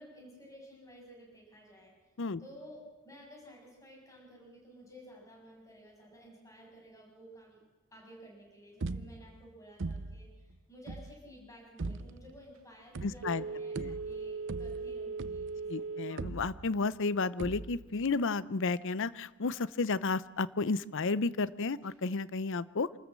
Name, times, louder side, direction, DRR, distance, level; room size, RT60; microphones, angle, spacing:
voice 1, 0.0-1.9 2.4-7.6 7.9-16.2, equal, 15° left, -1 dB, 7.1 m, -54 dB
sound 1, 8.8-9.4 9.8-10.3 10.9-11.2 11.8-12.3 12.9-13.4 13.8-15.7 16.2-16.9 17.4-18.0, right 3 dB, 55° right, 0.6 m, -40 dB
voice 2, 13.0-13.4 13.9-14.0 15.7-23.0, left 3 dB, 60° left, 17 dB, 0.7 m, -32 dB
Telephone, 13.2-16.3 16.7-16.8, right 4 dB, 75° right, 1.9 m, -39 dB
27.0 x 13.5 x 7.6 m, 1.1 s
head